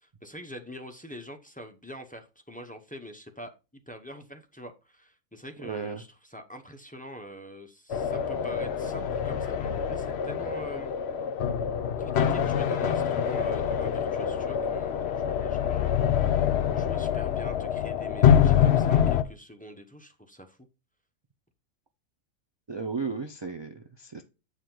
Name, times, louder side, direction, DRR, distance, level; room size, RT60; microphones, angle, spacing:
voice 1, 0.0-3.5 3.9-11.0 12.0-16.2 16.7-20.6, equal, 10° left, 5 dB, 0.7 m, -44 dB
voice 2, 5.6-6.0 22.7-24.2, right 5 dB, 45° right, 5 dB, 0.3 m, -34 dB
sound 1, 7.9-19.2, left 8 dB, 60° left, 0.8 m, -25 dB
8.3 x 4.9 x 3.8 m, 0.29 s
omnidirectional pair, 1.4 m